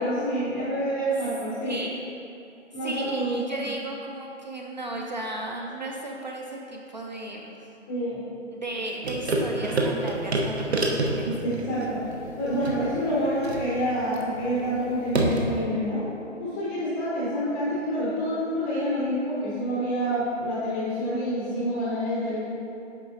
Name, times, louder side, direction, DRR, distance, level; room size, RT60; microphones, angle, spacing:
voice 1, 0.0-1.8 2.7-3.4 7.9-8.2 11.2-12.0 12.4-16.1 16.4-22.4, equal, 10° left, -8 dB, 0.6 m, -27 dB
voice 2, 1.6-2.0 2.8-7.6 8.5-11.3, right 1 dB, 40° right, 0 dB, 0.4 m, -35 dB
sound 1, 9.0-15.6, right 2 dB, 60° right, 1.0 m, -28 dB
8.8 x 6.1 x 2.7 m, 2.7 s
figure-of-eight pair, 145°, 37 cm